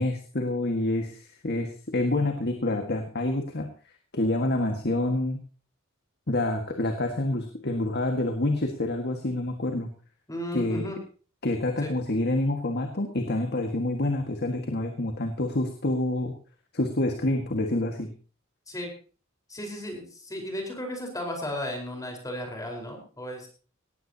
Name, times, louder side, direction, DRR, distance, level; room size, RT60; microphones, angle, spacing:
voice 1, 0.0-3.7 4.1-5.4 6.3-9.9 10.5-10.8 11.4-16.3 16.7-18.1, left 1 dB, 50° left, 4 dB, 1.8 m, -27 dB
voice 2, 10.3-11.0 11.8-11.9 18.7-18.9 19.5-23.5, left 1 dB, 15° left, 2 dB, 4.6 m, -35 dB
19.0 x 15.0 x 2.9 m, 0.37 s
head